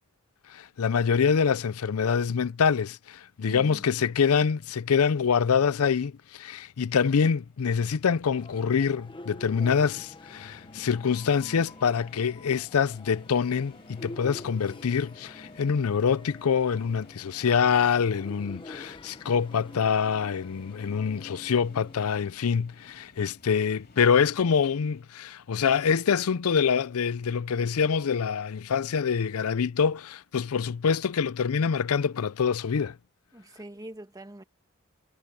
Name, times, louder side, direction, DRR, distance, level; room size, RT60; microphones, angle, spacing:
voice 1, 0.5-33.0, left 6 dB, 80° left, 0.5 m, -25 dB
voice 2, 3.4-4.1 33.3-34.4, right 1 dB, 15° right, 1.6 m, -44 dB
sound 1, 7.2-25.0, left 2 dB, 45° left, 3.0 m, -57 dB
sound 2, 8.3-22.1, left 2 dB, 25° left, 1.0 m, -47 dB
head